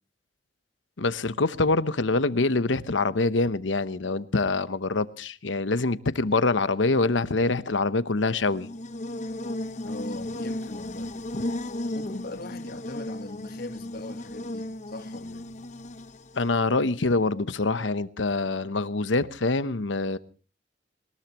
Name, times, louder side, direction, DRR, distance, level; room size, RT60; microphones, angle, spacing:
voice 1, 1.0-8.7 16.4-20.2, left 3 dB, 90° left, 0.9 m, -25 dB
Buzz, 8.4-16.5, left 1 dB, 40° left, 0.9 m, -35 dB
voice 2, 9.8-11.1 11.9-15.5, left 2 dB, 55° left, 1.7 m, -40 dB
22.0 x 20.5 x 3.0 m
head